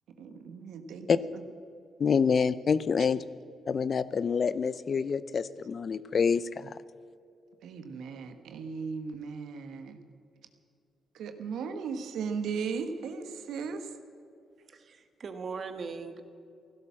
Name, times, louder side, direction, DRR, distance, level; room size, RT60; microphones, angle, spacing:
voice 1, 0.2-1.1 1.3-1.4 7.6-10.0 11.1-13.9, right 5 dB, 75° right, 7 dB, 1.3 m, -37 dB
voice 2, 2.0-3.2 3.7-6.7, left 6 dB, 55° left, 16 dB, 0.6 m, -27 dB
voice 3, 14.7-16.2, right 5 dB, 55° right, 7 dB, 1.7 m, -39 dB
16.0 x 12.0 x 7.4 m, 2.5 s
supercardioid pair, 55°, 0 cm